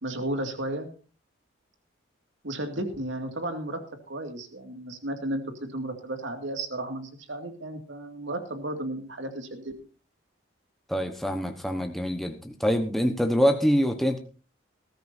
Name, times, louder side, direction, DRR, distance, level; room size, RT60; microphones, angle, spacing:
voice 1, 0.0-0.9 2.4-3.8 4.1-9.7, right 1 dB, 70° right, 5 dB, 2.3 m, -33 dB
voice 2, 10.9-14.2, equal, ahead, 4 dB, 1.1 m, -25 dB
19.5 x 13.0 x 2.7 m, 0.36 s
head